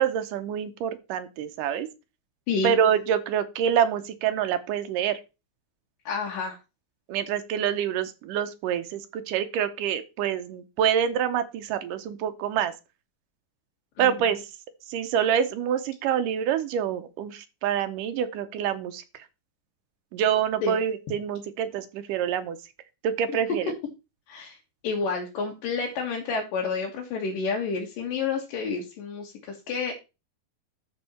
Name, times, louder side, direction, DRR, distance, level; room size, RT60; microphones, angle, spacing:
voice 1, 0.0-1.9 2.6-5.2 7.1-12.7 14.0-14.5 14.9-19.0 20.1-22.6 23.0-23.7, right 9 dB, 75° right, 9 dB, 2.2 m, -26 dB
voice 2, 6.1-6.6 14.0-14.2 20.6-20.8 24.3-24.6 24.8-29.9, left 4 dB, 70° left, -1 dB, 3.1 m, -29 dB
13.0 x 5.4 x 4.3 m, 0.28 s
omnidirectional pair, 4.3 m